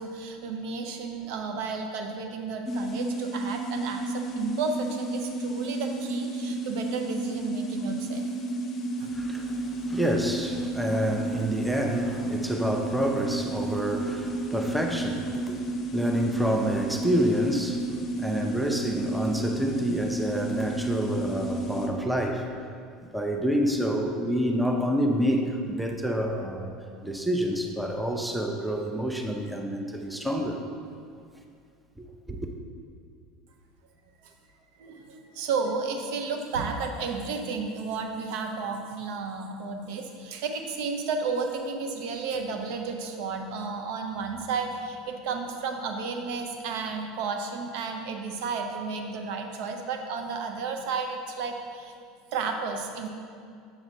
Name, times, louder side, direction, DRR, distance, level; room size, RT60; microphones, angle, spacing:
voice 1, 0.0-8.3 9.0-9.2 34.2-34.3 34.8-51.9 52.3-53.1, right 4 dB, 55° right, 4 dB, 0.6 m, -32 dB
sound 1, 2.7-21.9, right 2 dB, 30° left, 0.8 m, -32 dB
voice 2, 9.1-22.5 23.1-26.7 27.0-30.6 32.0-32.4, equal, 5° right, 3 dB, 0.6 m, -28 dB
7.9 x 6.7 x 2.8 m, 2.3 s
figure-of-eight pair, 70°, 0 cm